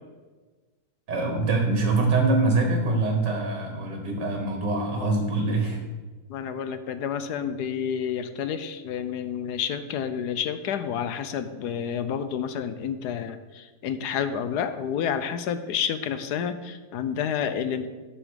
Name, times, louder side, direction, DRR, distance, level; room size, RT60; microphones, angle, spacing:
voice 1, 1.1-5.8, right 3 dB, 85° right, 2 dB, 2.0 m, -24 dB
voice 2, 6.3-17.9, left 8 dB, 75° left, 10 dB, 1.2 m, -29 dB
9.8 x 6.3 x 6.4 m, 1.3 s
omnidirectional pair, 1.8 m